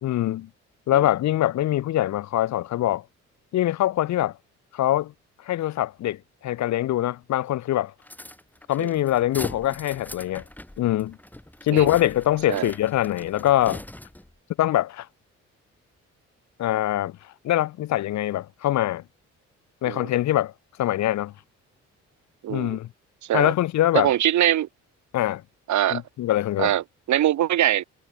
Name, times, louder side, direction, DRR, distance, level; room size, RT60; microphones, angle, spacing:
voice 1, 0.0-0.5 0.9-3.0 3.5-4.3 4.7-5.1 5.5-7.9 8.7-10.4 10.8-11.2 11.6-13.8 14.6-15.1 16.6-17.2 17.4-19.0 19.8-20.5 20.8-21.3 22.5-22.9 23.3-24.1 25.1-25.4 25.9-26.7, left 14 dB, 65° left, 0.7 m, -23 dB
sound 1, 8.0-14.4, left 1 dB, 5° left, 2.8 m, -40 dB
voice 2, 22.4-22.8 23.2-23.5 23.9-24.7 25.7-26.0 26.6-27.8, right 12 dB, 70° right, 1.9 m, -23 dB
cardioid pair, 90°, 30 cm